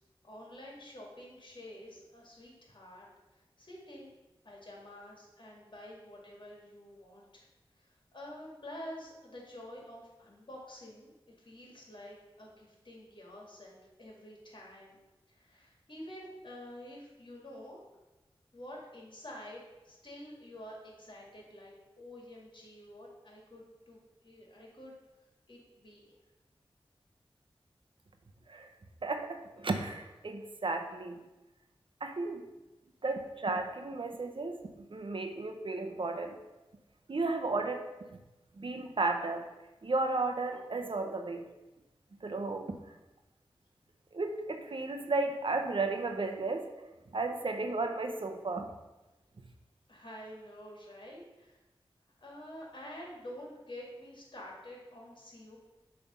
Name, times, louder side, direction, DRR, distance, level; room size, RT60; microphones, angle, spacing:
voice 1, 0.2-4.1 4.4-7.5 7.7-11.1 11.4-15.0 15.3-17.8 18.5-25.0 25.5-26.2 49.9-51.6 52.2-55.6, left 1 dB, 55° left, -2 dB, 2.0 m, -49 dB
voice 2, 29.0-31.2 32.0-32.5 33.0-34.6 34.9-36.4 37.1-38.2 38.6-39.5 39.8-41.5 42.2-42.7 44.1-46.7 47.1-48.7, right 3 dB, 60° right, 5 dB, 0.7 m, -34 dB
7.0 x 3.3 x 5.4 m, 1.1 s
cardioid pair, 45°, 10 cm